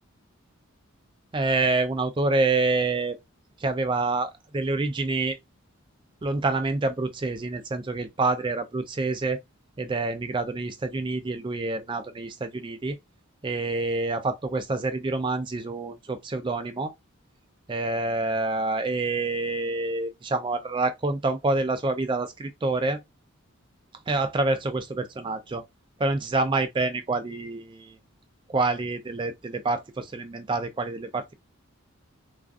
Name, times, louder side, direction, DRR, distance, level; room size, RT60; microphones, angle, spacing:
voice 1, 1.3-3.2 3.6-5.4 6.2-9.4 9.8-13.0 13.4-16.9 17.7-23.0 24.1-25.6 26.0-28.0 28.5-31.3, right 3 dB, 20° right, 0.3 m, -27 dB
2.4 x 2.3 x 2.4 m
head